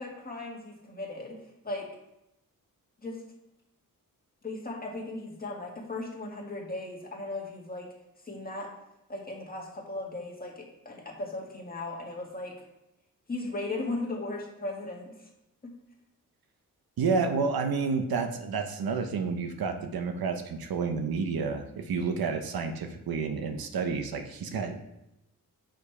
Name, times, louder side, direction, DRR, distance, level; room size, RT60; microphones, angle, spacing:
voice 1, 0.0-1.4 1.6-1.9 3.0-3.2 4.4-7.9 8.2-8.7 9.1-12.6 13.3-15.1 15.6-15.7, left 2 dB, 25° left, -2 dB, 1.9 m, -37 dB
voice 2, 17.0-24.8, right 5 dB, 85° right, 6 dB, 0.9 m, -30 dB
6.2 x 5.7 x 4.8 m, 0.88 s
wide cardioid pair, 105°, 35 cm